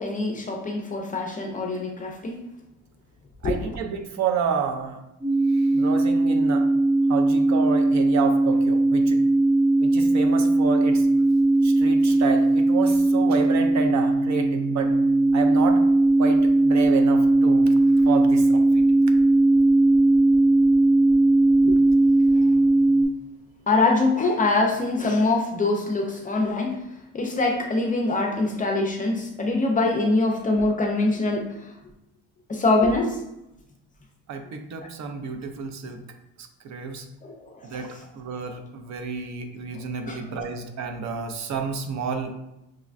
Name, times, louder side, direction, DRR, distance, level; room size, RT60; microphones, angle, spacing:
voice 1, 0.0-2.5 3.4-3.8 21.6-21.8 22.3-22.4 23.7-26.8 27.1-31.7 32.5-33.2 37.2-37.8 39.8-40.2, left 2 dB, 25° left, 2 dB, 0.4 m, -24 dB
voice 2, 3.4-5.0 5.5-6.7 7.1-9.2 9.8-11.1 11.6-15.0 15.3-15.8 16.2-17.7 18.0-18.8 34.3-36.0 36.4-37.1 37.6-42.3, right 6 dB, 55° right, 5 dB, 0.6 m, -30 dB
sound 1, 5.2-23.0, right 2 dB, 5° left, 0.9 m, -19 dB
6.1 x 2.2 x 2.4 m, 0.88 s
cardioid pair, 140°, 34 cm